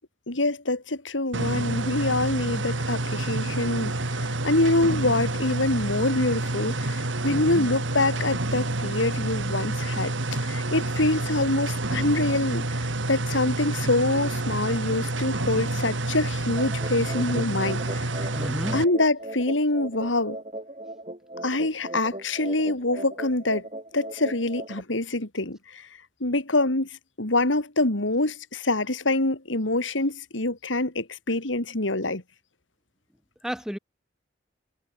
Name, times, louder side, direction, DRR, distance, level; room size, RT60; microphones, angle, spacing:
voice 1, 0.3-18.3 18.7-20.4 21.4-23.7 23.9-25.9 26.2-26.9 27.2-32.2, left 2 dB, 90° left, 3.2 m, -25 dB
sound 1, 1.3-18.8, right 2 dB, 85° right, 2.4 m, -28 dB
voice 2, 7.3-7.7 18.4-18.8 33.4-33.8, equal, 5° right, 0.7 m, -32 dB
sound 2, 16.6-24.8, right 1 dB, 30° right, 4.9 m, -38 dB
head